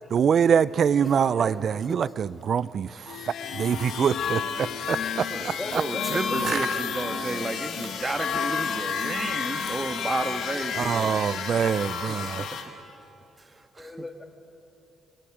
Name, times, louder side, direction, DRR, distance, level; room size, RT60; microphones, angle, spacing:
voice 1, 0.1-5.3 5.7-5.8 6.4-6.6 10.7-12.5, right 7 dB, 55° right, 18 dB, 0.4 m, -24 dB
voice 2, 1.0-1.5 5.3-6.6 12.9-13.2 13.8-14.2, left 2 dB, 20° left, 4 dB, 2.0 m, -38 dB
sound 1, 3.1-12.7, left 6 dB, 75° left, 1.7 m, -31 dB
voice 3, 5.0-11.1 11.9-12.6 13.4-13.9, right 2 dB, 25° right, 7 dB, 1.6 m, -33 dB
27.0 x 24.5 x 5.0 m, 3.0 s
cardioid pair, 90°, 0 cm